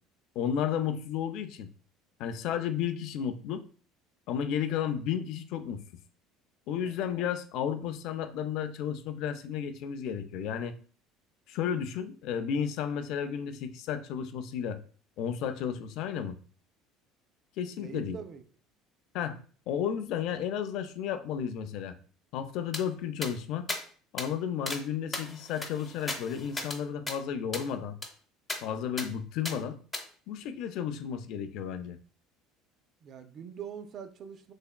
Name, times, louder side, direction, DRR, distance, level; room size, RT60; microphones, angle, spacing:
voice 1, 0.4-1.7 2.2-3.6 4.3-5.8 6.7-10.8 11.5-14.8 15.2-16.4 17.6-18.2 19.1-19.4 19.7-22.0 22.3-23.7 24.1-28.0 28.6-29.8 30.3-32.0, left 8 dB, 65° left, 9 dB, 0.3 m, -33 dB
voice 2, 17.8-18.4 33.0-34.5, right 7 dB, 45° right, 9 dB, 0.3 m, -43 dB
sound 1, 22.7-22.8 23.2-23.3 23.7-23.8 24.2-24.3 24.7-24.8 25.1-26.8 27.1-27.2 27.5-27.7 28.0-28.1 28.5-28.6 29.0-29.1 29.4-29.6 29.9-30.0, left 2 dB, 15° left, 0.5 m, -36 dB
3.3 x 2.9 x 2.2 m, 0.42 s
supercardioid pair, 115°, 0 cm